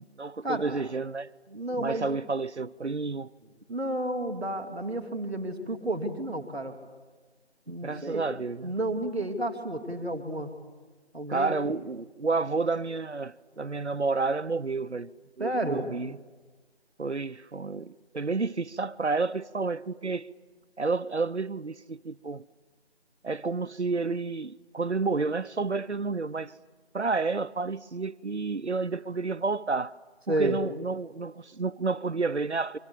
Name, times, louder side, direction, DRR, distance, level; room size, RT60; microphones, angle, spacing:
voice 1, 0.0-1.3 1.8-3.3 7.8-8.7 11.3-16.2 17.0-20.3 20.8-22.4 23.2-26.5 26.9-29.9 30.3-32.8, right 4 dB, 80° right, 0.9 m, -30 dB
voice 2, 1.5-2.1 3.7-6.8 7.7-8.3 8.6-10.5 11.1-11.7 15.4-15.9 30.3-30.6, right 1 dB, ahead, 1.0 m, -31 dB
30.0 x 24.5 x 7.2 m
figure-of-eight pair, 165°, 34 cm